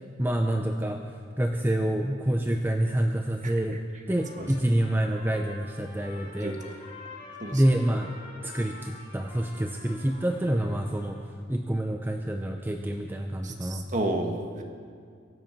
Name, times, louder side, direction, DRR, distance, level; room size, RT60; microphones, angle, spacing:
voice 1, 0.2-3.8 4.1-6.5 7.5-8.1 8.4-11.2 11.5-13.9, right 1 dB, 10° right, 3 dB, 0.6 m, -27 dB
Trumpet, 4.1-11.3, left 3 dB, 35° left, 3.5 m, -47 dB
voice 2, 6.4-6.7 7.4-7.6 13.4-14.6, right 1 dB, 40° right, 3 dB, 1.5 m, -31 dB
23.0 x 8.0 x 5.9 m, 2.2 s
head